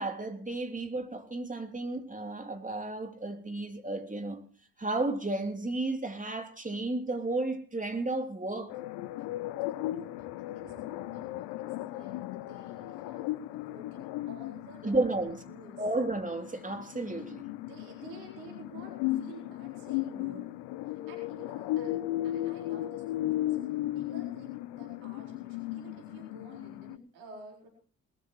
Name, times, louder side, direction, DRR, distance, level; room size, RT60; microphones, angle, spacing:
voice 1, 0.0-4.4 4.8-8.8 14.8-15.4 15.8-17.4, right 2 dB, 20° right, 3.1 m, -33 dB
sound 1, 8.7-27.0, left 15 dB, 65° left, 0.7 m, -36 dB
voice 2, 10.4-15.0 15.5-15.9 17.6-20.5 20.8-22.0 22.2-23.6 23.9-27.7, right 2 dB, 80° right, 4.4 m, -51 dB
20.5 x 14.5 x 3.1 m
figure-of-eight pair, 40°, 42 cm